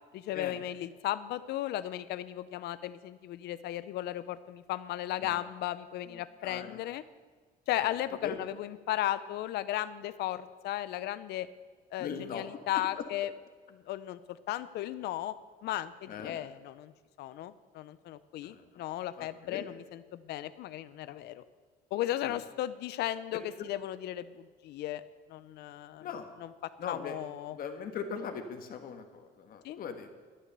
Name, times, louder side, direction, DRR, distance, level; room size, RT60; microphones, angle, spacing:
voice 1, 0.1-7.0 7.7-11.5 11.9-13.3 13.7-15.4 15.6-16.9 17.2-21.4 21.9-25.0 25.3-26.1 26.4-26.5 26.9-27.6 29.6-29.8, left 13 dB, 75° left, 14 dB, 0.6 m, -35 dB
voice 2, 6.1-6.8 7.8-7.9 8.2-8.3 12.0-12.4 12.7-12.8 16.1-16.4 18.4-18.8 19.2-19.6 22.2-22.3 23.6-23.7 26.0-26.3 26.8-27.2 27.5-30.1, left 7 dB, 60° left, 6 dB, 1.5 m, -40 dB
11.0 x 10.0 x 6.8 m, 1.4 s
cardioid pair, 110°, 17 cm